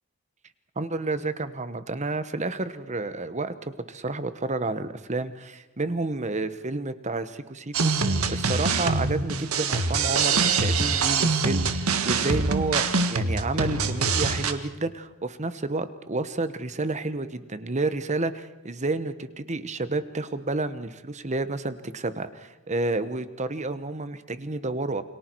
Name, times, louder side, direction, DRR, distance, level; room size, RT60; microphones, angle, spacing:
voice 1, 0.8-25.0, right 2 dB, 35° right, 12 dB, 1.2 m, -30 dB
sound 1, 7.7-14.5, right 4 dB, 85° right, 1.7 m, -24 dB
29.0 x 23.0 x 4.7 m, 1.1 s
head